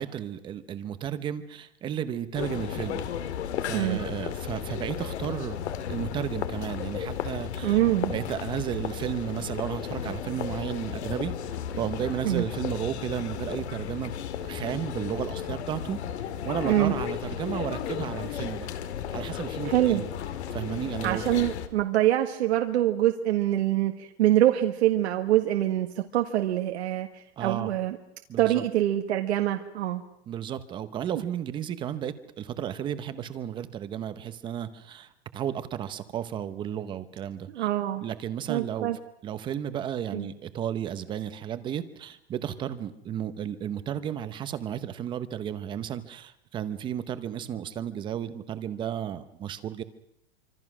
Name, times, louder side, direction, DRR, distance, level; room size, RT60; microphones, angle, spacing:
voice 1, 0.0-3.0 3.6-5.6 5.9-7.8 8.1-11.3 11.8-14.1 14.4-16.0 16.4-18.7 19.1-20.1 20.5-21.2 27.4-27.7 28.3-28.6 30.3-37.7 38.0-38.9 39.2-49.8, right 10 dB, 15° right, 12 dB, 0.8 m, -33 dB
sound 1, 2.3-21.7, left 9 dB, 85° left, 2.5 m, -34 dB
voice 2, 7.6-8.1 12.2-12.4 16.6-16.9 19.7-20.0 21.0-28.0 28.4-30.0 37.5-38.0 38.5-39.0 40.1-40.3, right 13 dB, 80° right, 4 dB, 1.7 m, -25 dB
26.0 x 25.5 x 6.2 m, 0.79 s
supercardioid pair, 170°, 32 cm